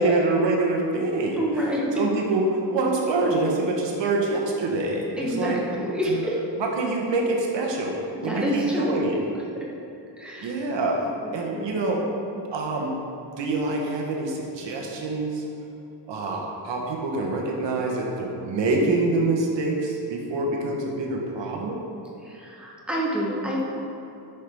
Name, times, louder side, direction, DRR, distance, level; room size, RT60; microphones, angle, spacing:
voice 1, 0.0-1.4 2.0-5.6 6.1-6.2 6.6-8.0 8.2-9.2 10.4-11.0 11.3-12.0 12.5-13.0 13.4-15.4 16.1-21.8, right 2 dB, 75° right, -1 dB, 1.0 m, -25 dB
voice 2, 1.4-1.8 5.2-6.4 8.1-8.9 9.6-9.7 10.2-10.6 11.2-11.7 22.3-23.6, equal, ahead, -4 dB, 0.8 m, -28 dB
6.6 x 5.6 x 3.4 m, 2.8 s
wide cardioid pair, 175°, 44 cm